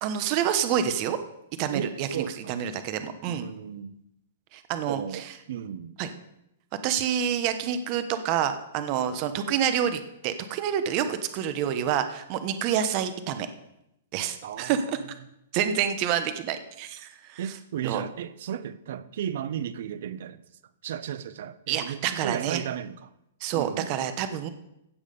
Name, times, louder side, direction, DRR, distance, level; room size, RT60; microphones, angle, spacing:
voice 1, 0.0-1.2 1.6-3.4 4.5-5.3 6.0-6.1 6.8-13.5 14.1-15.0 15.5-17.4 17.8-18.0 21.7-22.6 23.4-24.5, right 9 dB, 30° right, 1.0 m, -28 dB
voice 2, 1.7-2.6 3.3-4.0 4.9-6.0 11.1-11.2 14.4-14.9 17.4-20.4 20.8-23.1 23.5-23.9, right 9 dB, 55° right, 0.7 m, -35 dB
15.5 x 7.2 x 5.4 m
hypercardioid pair, 165°, 0 cm